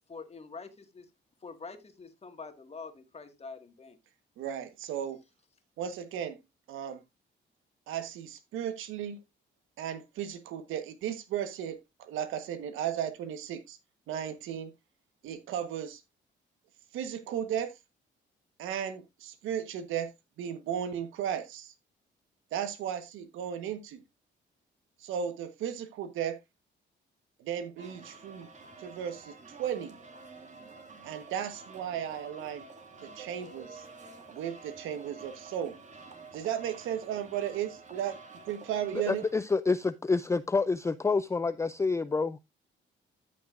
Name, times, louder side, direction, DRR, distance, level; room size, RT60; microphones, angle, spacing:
voice 1, 0.1-1.1 1.4-4.0, left 4 dB, 30° left, 1.9 m, -45 dB
voice 2, 4.4-5.2 5.8-6.4 6.7-7.0 7.9-9.2 9.8-13.8 14.1-14.7 15.2-16.0 16.9-17.7 18.6-20.1 20.4-21.7 22.5-24.0 25.0-26.4 27.4-28.5 28.8-29.3 29.6-30.0 31.0-32.6 33.0-33.8 34.3-35.8 36.3-38.2 38.5-39.2, right 9 dB, 90° right, 1.3 m, -35 dB
sound 1, 27.8-39.3, right 3 dB, 35° right, 2.3 m, -49 dB
voice 3, 38.9-42.4, left 4 dB, 15° left, 0.4 m, -28 dB
13.5 x 6.1 x 2.5 m
cardioid pair, 90°, 20 cm